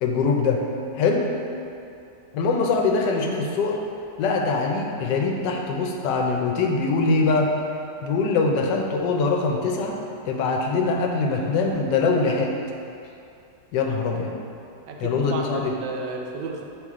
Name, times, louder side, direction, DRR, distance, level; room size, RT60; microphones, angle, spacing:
voice 1, 0.0-0.6 1.0-1.3 2.3-3.8 4.2-7.5 8.0-10.0 10.3-12.5 13.7-14.3 15.0-15.7, left 4 dB, 80° left, 1 dB, 1.3 m, -23 dB
voice 2, 14.9-16.6, right 4 dB, 85° right, 1 dB, 1.3 m, -33 dB
7.7 x 3.4 x 3.6 m, 2.6 s
omnidirectional pair, 1.9 m